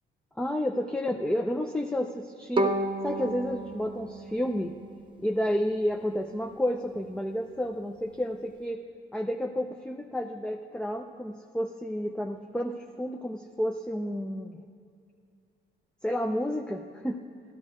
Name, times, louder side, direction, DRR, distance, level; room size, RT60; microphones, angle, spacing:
voice 1, 0.4-2.8 3.0-4.8 5.2-8.8 9.1-14.6 16.0-17.2, equal, 5° left, 4 dB, 0.4 m, -31 dB
Bowed string instrument, 2.6-5.6, right 2 dB, 25° right, 0.8 m, -32 dB
12.5 x 11.0 x 3.5 m, 2.4 s
cardioid pair, 90°, 20 cm